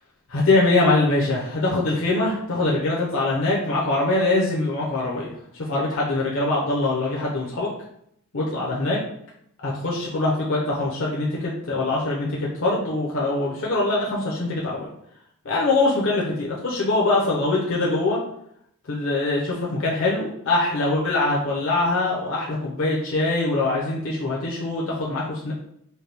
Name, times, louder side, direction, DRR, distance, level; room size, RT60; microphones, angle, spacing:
voice 1, 0.3-7.7 8.3-9.0 9.6-14.9 15.4-18.2 18.9-25.5, left 2 dB, 60° left, -4 dB, 0.7 m, -23 dB
4.3 x 2.2 x 3.3 m, 0.73 s
head